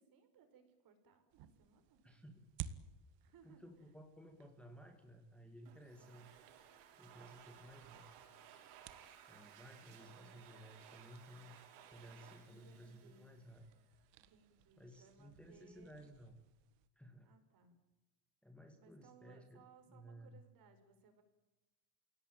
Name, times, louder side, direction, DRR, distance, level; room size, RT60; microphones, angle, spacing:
voice 1, 0.0-2.0 3.2-3.9 5.9-6.3 12.4-13.4 14.2-16.1 17.2-17.8 18.8-21.2, right 5 dB, 45° right, 7 dB, 5.4 m, -66 dB
sound 1, 1.3-16.9, right 10 dB, 60° right, 1.6 m, -57 dB
voice 2, 2.0-2.5 3.4-6.3 7.0-8.1 9.3-11.6 11.9-13.7 14.8-16.3 17.0-17.3 18.4-19.6 19.9-20.4, equal, ahead, 3 dB, 2.1 m, -57 dB
Domestic sounds home sounds, 5.7-14.1, right 9 dB, 90° right, 5.9 m, -60 dB
29.0 x 17.5 x 9.1 m, 1.0 s
cardioid pair, 165°, 50 cm